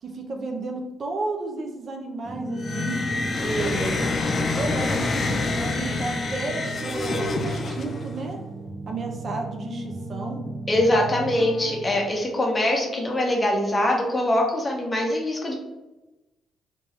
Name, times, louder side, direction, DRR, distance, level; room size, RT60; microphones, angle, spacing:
voice 1, 0.0-3.0 3.4-4.0 4.4-8.4 8.9-10.4, right 3 dB, 50° right, 2 dB, 0.6 m, -32 dB
sound 1, 2.2-12.0, right 1 dB, 10° right, 0.9 m, -34 dB
sound 2, 2.5-8.2, left 3 dB, 45° left, 0.5 m, -27 dB
voice 2, 10.7-15.5, left 1 dB, 25° left, 0 dB, 0.9 m, -23 dB
3.4 x 2.8 x 3.2 m, 1.0 s
cardioid pair, 90°, 0 cm